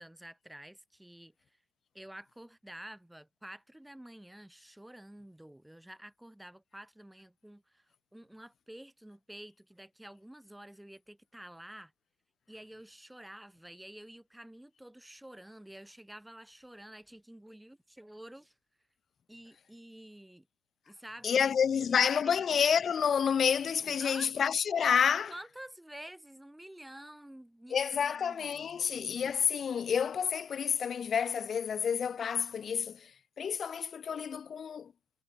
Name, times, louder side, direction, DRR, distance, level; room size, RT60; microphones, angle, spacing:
voice 1, 0.0-1.3 1.9-11.9 12.5-18.5 19.3-20.5 20.9-22.7 24.0-24.3 25.3-29.2, right 1 dB, 5° right, 3.8 m, -50 dB
voice 2, 21.2-25.3 27.7-33.1 33.4-34.9, left 7 dB, 25° left, 0.8 m, -29 dB
supercardioid pair, 130°, 0 cm